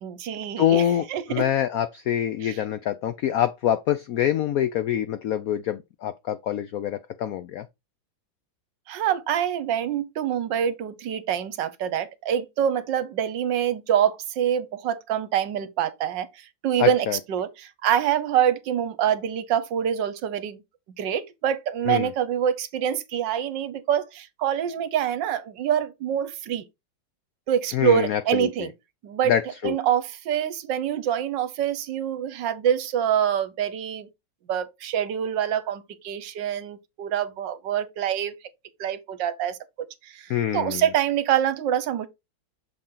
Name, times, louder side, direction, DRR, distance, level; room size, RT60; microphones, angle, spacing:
voice 1, 0.0-1.5 2.4-2.6 8.9-20.6 21.0-26.6 27.5-28.7 29.0-29.4 29.6-34.1 34.5-38.3 38.8-39.6 40.0-42.1, right 9 dB, 70° right, 1.4 m, -25 dB
voice 2, 0.6-7.7 16.8-17.2 21.9-22.1 27.7-28.7 29.3-29.7 40.3-40.8, left 10 dB, 90° left, 0.7 m, -25 dB
6.5 x 4.3 x 3.7 m
omnidirectional pair, 2.1 m